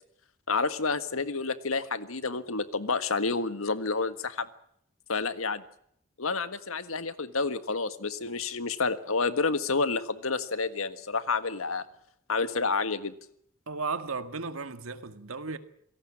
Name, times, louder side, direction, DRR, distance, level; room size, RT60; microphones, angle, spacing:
voice 1, 0.5-4.5 5.1-5.6 6.2-11.8 12.3-13.1, left 4 dB, 85° left, 1.6 m, -29 dB
voice 2, 13.7-15.6, right 4 dB, 85° right, 2.0 m, -35 dB
27.0 x 18.0 x 7.4 m
head